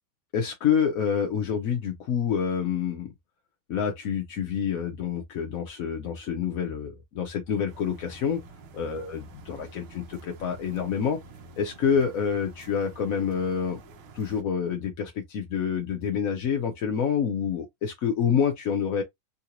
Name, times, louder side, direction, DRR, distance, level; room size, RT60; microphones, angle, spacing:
voice 1, 0.3-3.1 3.7-8.4 8.7-11.2 11.6-13.8 14.1-19.0, left 7 dB, 70° left, 0.8 m, -27 dB
sound 1, 7.7-14.4, right 3 dB, 85° right, 1.6 m, -49 dB
3.8 x 2.4 x 2.8 m
omnidirectional pair, 2.2 m